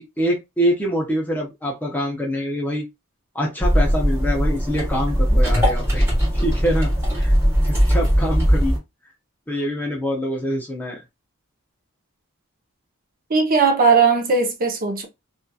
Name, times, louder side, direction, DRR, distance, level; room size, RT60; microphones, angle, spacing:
voice 1, 0.0-2.9 3.3-7.3 7.6-8.8 9.5-11.0, equal, 10° left, 0.6 m, -25 dB
sound 1, 3.6-8.8, equal, 10° right, 1.3 m, -19 dB
voice 2, 13.3-15.1, right 5 dB, 40° right, 0.7 m, -18 dB
2.7 x 2.4 x 2.3 m
head